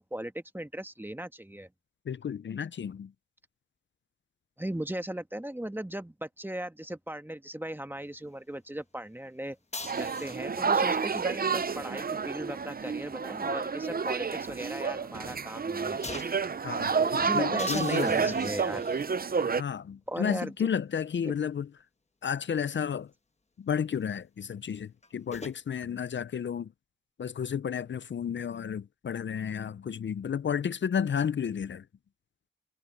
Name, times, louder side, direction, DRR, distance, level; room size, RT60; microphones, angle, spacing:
voice 1, 0.0-1.7 4.6-9.6 10.0-16.0 16.9-18.9 20.1-20.7 21.2-21.3, right 1 dB, 10° right, 1.4 m, -37 dB
voice 2, 2.1-3.1 16.6-18.4 19.6-21.7 22.2-23.1 23.6-26.7 27.2-31.8, left 7 dB, 70° left, 0.5 m, -32 dB
sound 1, 9.7-10.7 12.4-14.0 14.4-14.5 16.0-16.5 17.6-19.1 20.0-20.1 24.7-25.6, left 3 dB, 35° left, 1.2 m, -43 dB
sound 2, 9.8-19.6, right 5 dB, 50° right, 0.6 m, -30 dB
wide cardioid pair, 55°, 19 cm